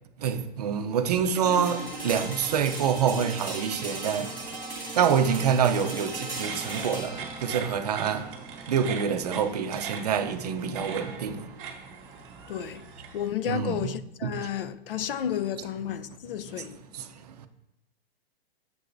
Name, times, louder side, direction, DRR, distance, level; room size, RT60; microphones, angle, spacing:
voice 1, 0.2-4.3 4.9-11.5 13.5-13.9 14.2-14.3 16.9-17.5, right 7 dB, 40° right, 0.6 m, -27 dB
sound 1, 1.4-11.3, right 2 dB, 5° left, 1.1 m, -38 dB
sound 2, 6.3-13.3, right 6 dB, 25° right, 1.3 m, -41 dB
voice 2, 12.5-16.8, left 9 dB, 65° left, 0.5 m, -32 dB
9.6 x 6.9 x 2.6 m
hypercardioid pair, 180°, 30 cm